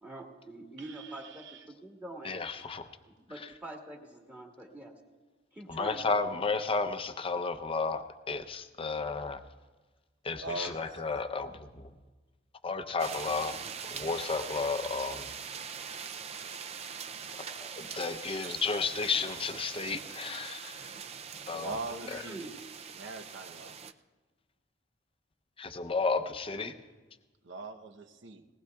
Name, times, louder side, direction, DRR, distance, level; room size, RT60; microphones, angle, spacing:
voice 1, 0.0-2.4 3.1-4.9 5.5-6.2 10.6-10.7 21.9-22.5, right 1 dB, 10° right, -1 dB, 1.6 m, -45 dB
voice 2, 0.8-1.7 10.4-10.8 21.5-22.5 22.9-23.8 27.4-28.5, right 2 dB, 70° right, 6 dB, 0.9 m, -41 dB
voice 3, 2.2-2.9 3.4-3.5 5.7-9.4 10.2-11.9 12.6-13.6 13.9-15.3 17.4-21.0 21.5-21.7 22.1-22.2 25.6-26.8, left 4 dB, 30° left, 8 dB, 0.7 m, -33 dB
sound 1, 13.0-23.9, right 6 dB, 35° right, 0.4 m, -42 dB
20.0 x 18.5 x 2.3 m, 1.3 s
head